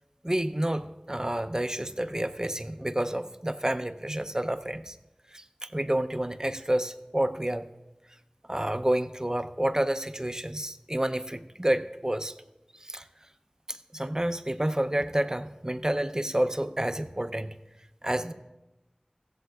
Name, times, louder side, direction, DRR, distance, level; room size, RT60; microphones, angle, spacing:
voice 1, 0.2-5.0 5.3-7.7 8.5-12.3 12.8-13.0 13.7-17.6 18.0-18.3, right 1 dB, 25° right, 10 dB, 0.5 m, -29 dB
15.5 x 14.0 x 2.4 m, 0.99 s
wide cardioid pair, 45°, 2 cm